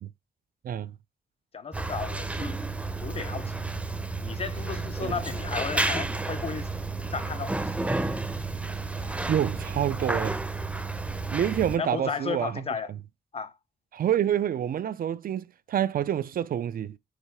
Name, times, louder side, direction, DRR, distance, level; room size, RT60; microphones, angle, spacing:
voice 1, 1.5-2.6 3.0-3.6 4.2-6.7 7.0-7.7 11.8-12.9 13.3-13.5, left 6 dB, 40° left, 0.6 m, -34 dB
sound 1, 1.7-11.8, right 3 dB, 10° right, 0.6 m, -31 dB
voice 2, 9.0-10.4 11.3-12.7 13.9-17.0, right 10 dB, 65° right, 0.4 m, -27 dB
4.9 x 3.6 x 5.6 m
wide cardioid pair, 160°, 16 cm